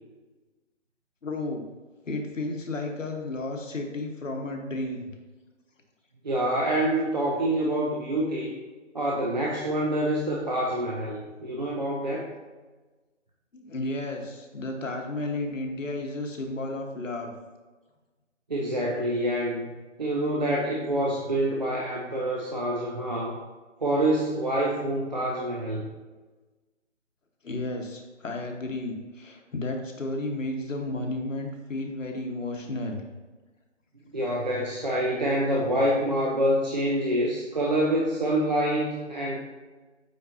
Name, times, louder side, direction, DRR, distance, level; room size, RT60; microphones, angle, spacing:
voice 1, 1.2-1.6 2.0-5.1 13.5-17.3 27.4-33.0, left 2 dB, 85° left, 3 dB, 1.4 m, -33 dB
voice 2, 6.2-8.5 8.9-12.3 18.5-19.7 20.0-23.4 23.8-25.8 34.1-39.4, right 1 dB, 35° right, -3 dB, 0.7 m, -26 dB
7.8 x 4.6 x 2.7 m, 1.3 s
hypercardioid pair, 170°, 37 cm